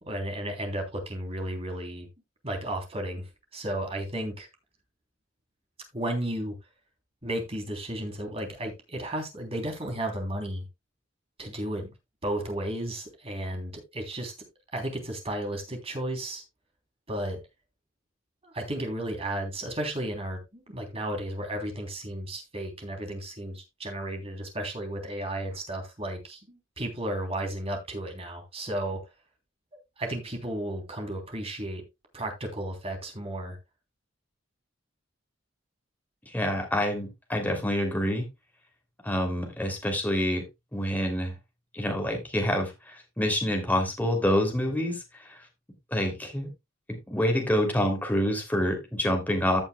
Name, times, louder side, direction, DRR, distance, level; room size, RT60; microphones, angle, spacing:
voice 1, 0.0-2.1 2.4-4.5 5.9-6.5 7.2-10.6 11.4-11.9 12.2-14.3 14.7-16.4 17.1-17.4 18.4-29.0 30.0-31.8 32.1-33.6, right 1 dB, 30° right, 3.3 m, -33 dB
voice 2, 36.3-38.3 39.0-40.4 40.7-41.3 41.7-45.4 45.9-46.5 46.9-49.6, equal, 10° left, 3.0 m, -27 dB
15.0 x 7.2 x 2.3 m
head